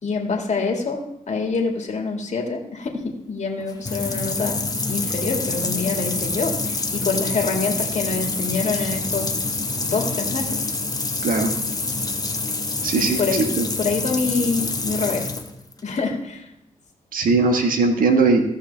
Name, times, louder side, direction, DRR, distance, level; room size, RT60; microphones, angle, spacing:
voice 1, 0.0-4.6 4.9-9.3 9.8-10.7 13.0-13.4 13.8-15.3 15.8-16.5, left 4 dB, 55° left, 1 dB, 2.1 m, -26 dB
sound 1, 3.6-16.0, left 3 dB, 25° left, 1.2 m, -26 dB
voice 2, 12.8-13.2 13.6-13.7 17.1-18.4, right 3 dB, 75° right, 4 dB, 1.6 m, -19 dB
15.5 x 5.8 x 3.4 m, 0.81 s
cardioid pair, 55°, 14 cm